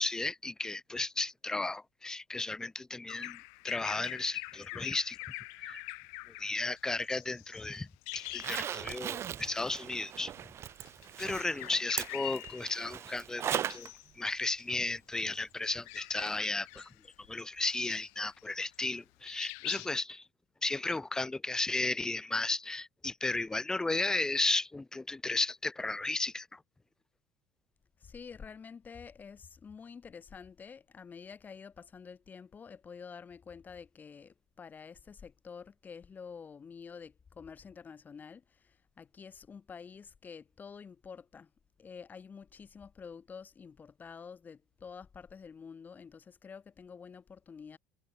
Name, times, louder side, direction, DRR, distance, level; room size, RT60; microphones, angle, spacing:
voice 1, 0.0-3.4 3.6-5.2 5.6-5.8 6.4-7.9 8.1-10.3 11.2-13.9 14.2-16.9 17.3-20.2 20.6-26.6, left 2 dB, 10° left, 0.3 m, -34 dB
Bird vocalization bird call bird song, 3.1-9.1 9.5-9.7 10.7-13.0 13.5-14.1 14.5-19.0 19.2-19.9, left 40 dB or more, 85° left, 0.6 m, -44 dB
Zipper (clothing), 8.3-13.9 14.3-14.4 16.3-16.4 16.8-16.9, right 10 dB, 40° right, 1.6 m, -39 dB
voice 2, 28.0-41.5 41.8-47.8, left 6 dB, 25° left, 7.8 m, -49 dB
cardioid pair, 135°, 7 cm